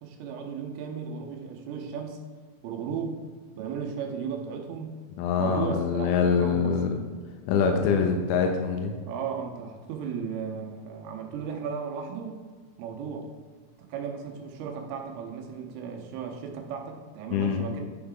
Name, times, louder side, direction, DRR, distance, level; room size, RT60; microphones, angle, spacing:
voice 1, 0.0-2.2 2.6-3.2 3.6-4.9 5.4-6.8 9.0-12.4 12.8-13.3 13.8-17.8, right 6 dB, 85° right, 2 dB, 3.3 m, -35 dB
voice 2, 5.2-7.0 7.5-8.9 17.3-17.7, left 6 dB, 90° left, 3 dB, 3.4 m, -24 dB
9.6 x 5.6 x 3.6 m, 1.5 s
omnidirectional pair, 6.0 m